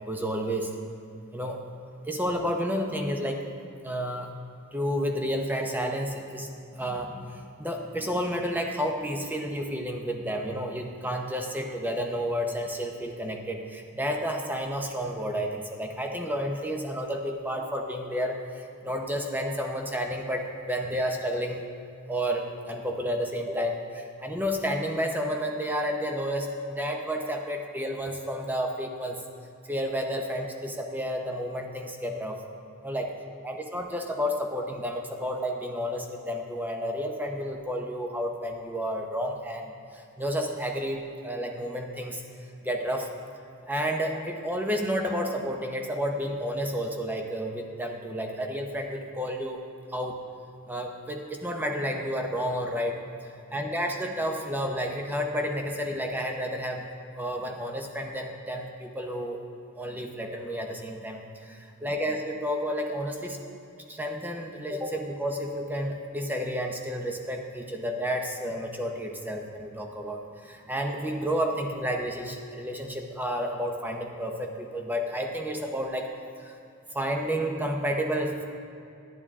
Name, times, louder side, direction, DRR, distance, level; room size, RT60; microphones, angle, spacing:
voice 1, 0.1-0.7 1.3-1.6 2.1-3.5 3.8-4.3 4.7-21.6 22.1-29.2 29.6-32.4 32.8-33.1 33.4-43.1 43.7-49.6 49.9-50.2 50.7-56.9 57.2-59.4 59.8-63.4 63.9-76.1 76.4-76.6 76.9-78.5, equal, 10° right, 2 dB, 0.8 m, -31 dB
10.5 x 10.5 x 3.7 m, 2.6 s
head